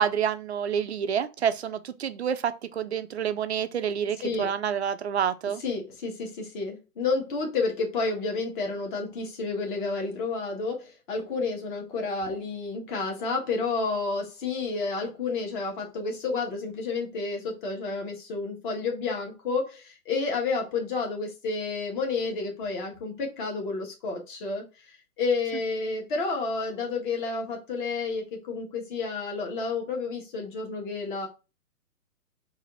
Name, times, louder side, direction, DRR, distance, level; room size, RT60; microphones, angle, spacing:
voice 1, 0.0-5.6, right 8 dB, 50° right, 0.4 m, -28 dB
voice 2, 5.6-31.3, left 4 dB, 35° left, 1.4 m, -30 dB
4.2 x 2.6 x 3.9 m
figure-of-eight pair, 130°, 45 cm